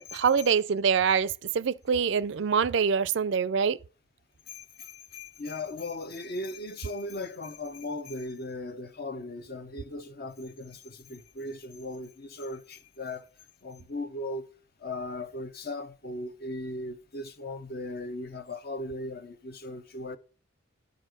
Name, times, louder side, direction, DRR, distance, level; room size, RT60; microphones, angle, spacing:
voice 1, 0.0-3.8, right 6 dB, 60° right, 0.4 m, -25 dB
voice 2, 4.5-13.3 13.6-14.4 14.8-20.2, left 2 dB, 50° left, 0.8 m, -38 dB
11.5 x 5.4 x 6.5 m
head